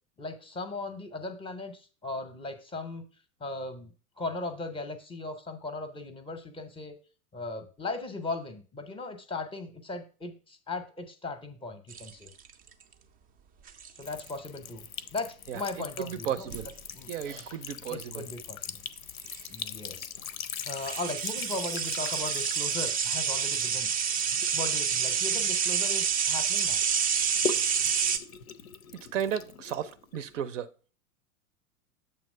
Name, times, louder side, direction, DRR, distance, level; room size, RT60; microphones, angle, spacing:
voice 1, 0.2-3.1 3.4-7.0 7.3-12.3 13.9-14.9 15.1-16.5 16.9-17.1 17.3-17.4 17.9-18.8 19.5-20.3 20.7-23.9 24.5-26.8, left 3 dB, 15° left, 0.6 m, -38 dB
sound 1, 11.9-12.7 13.7-14.1 16.5-16.7 18.9-19.0 19.2-19.4 20.6-28.2, right 7 dB, 20° right, 0.4 m, -28 dB
Sink (filling or washing) / Trickle dribble, 14.0-26.1 26.5-30.4, left 7 dB, 85° left, 0.6 m, -41 dB
voice 2, 16.0-16.7 17.1-18.3 28.9-30.7, right 9 dB, 65° right, 0.6 m, -34 dB
6.9 x 3.0 x 5.3 m
figure-of-eight pair, 95°, 41 cm